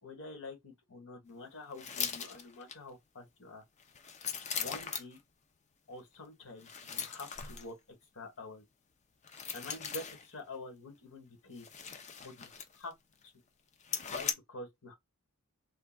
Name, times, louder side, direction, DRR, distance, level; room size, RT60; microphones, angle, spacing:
voice 1, 0.0-3.6 4.5-5.2 5.9-7.7 8.1-8.6 9.5-11.7 12.2-12.9 14.0-14.9, left 2 dB, 60° left, 1.5 m, -47 dB
sound 1, 1.7-2.8 3.8-5.2 6.6-7.7 9.2-10.3 11.5-12.9 13.2-13.3 13.8-14.3, left 6 dB, 30° left, 0.5 m, -39 dB
3.7 x 2.3 x 2.2 m
head